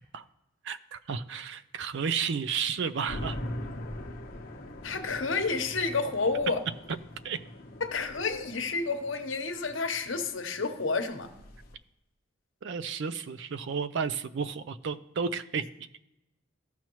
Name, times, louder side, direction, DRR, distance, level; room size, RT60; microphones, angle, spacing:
voice 1, 0.6-3.4 7.2-7.4 12.6-15.7, right 6 dB, 65° right, 14 dB, 0.4 m, -32 dB
sound 1, 3.1-11.7, left 1 dB, 50° left, 0.9 m, -42 dB
voice 2, 4.8-6.6 7.8-11.3, left 4 dB, 70° left, 6 dB, 1.0 m, -30 dB
14.5 x 5.7 x 3.0 m, 0.94 s
head